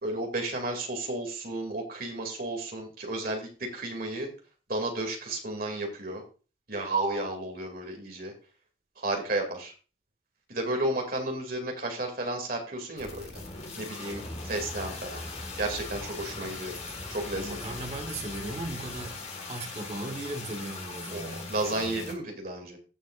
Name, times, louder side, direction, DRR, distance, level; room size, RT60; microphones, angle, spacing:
voice 1, 0.0-4.3 4.7-6.2 6.7-8.3 9.0-9.7 10.5-13.4 13.8-15.2 15.6-16.8 17.1-17.8 21.1-22.8, right 2 dB, 45° right, 2.5 m, -32 dB
sound 1, 13.0-22.1, left 3 dB, 35° left, 1.6 m, -41 dB
sound 2, 14.1-19.2, equal, 5° left, 1.2 m, -43 dB
voice 2, 17.3-19.2 19.5-21.4, right 1 dB, 30° right, 1.4 m, -37 dB
15.0 x 7.3 x 2.5 m
head